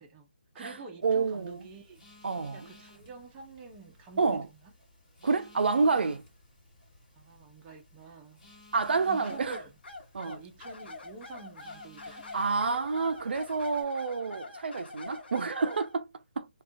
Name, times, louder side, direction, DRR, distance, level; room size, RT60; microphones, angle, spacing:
voice 1, 0.0-2.0 2.5-4.7 7.2-8.4 9.1-9.7 10.3-12.2, right 4 dB, 20° right, 0.5 m, -48 dB
Telephone, 1.0-13.8, left 2 dB, 30° left, 1.5 m, -58 dB
voice 2, 1.0-1.6 2.2-2.7 4.2-4.4 5.2-6.2 8.7-9.6 10.1-10.4 12.3-16.1 16.4-16.5, right 4 dB, 75° right, 0.4 m, -28 dB
sound 1, 9.2-15.9, left 3 dB, 75° left, 0.7 m, -45 dB
2.4 x 2.2 x 2.3 m
hypercardioid pair, 155°, 6 cm